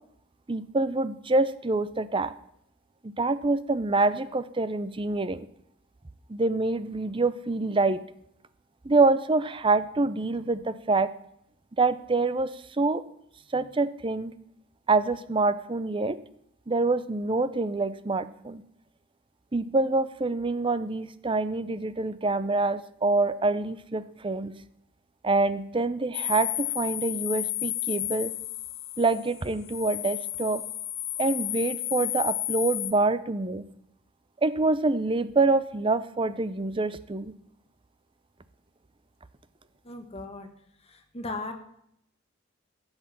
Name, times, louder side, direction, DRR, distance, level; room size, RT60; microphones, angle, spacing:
voice 1, 0.5-2.3 3.0-5.5 6.3-8.0 8.8-11.1 11.8-12.5 12.8-13.0 13.5-14.3 14.9-16.2 16.7-18.6 19.5-24.5 25.2-28.3 29.0-30.6 31.2-33.6 34.4-37.3, right 3 dB, 25° right, 14 dB, 0.6 m, -26 dB
sound 1, 26.1-32.9, left 14 dB, 55° left, 0.8 m, -32 dB
voice 2, 39.8-40.5 40.9-41.5, left 2 dB, 30° left, 5 dB, 1.6 m, -37 dB
12.5 x 8.0 x 7.2 m, 0.73 s
head